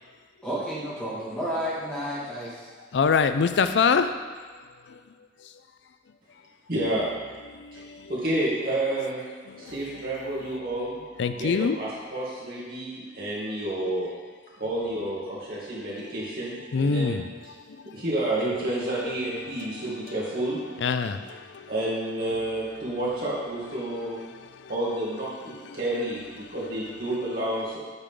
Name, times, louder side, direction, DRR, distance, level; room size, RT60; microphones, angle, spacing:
voice 1, 0.4-2.5, equal, 5° left, -9 dB, 2.1 m, -31 dB
voice 2, 2.9-4.1 11.2-11.8 16.7-17.2 20.8-21.2, left 5 dB, 80° left, 10 dB, 0.4 m, -22 dB
voice 3, 6.7-7.1 7.7-7.8 8.1-9.2 9.6-11.0 11.4-14.1 14.6-17.2 17.9-20.6 21.7-24.2 24.7-27.8, right 1 dB, 55° right, -7 dB, 2.5 m, -30 dB
8.0 x 6.8 x 3.8 m, 1.5 s
head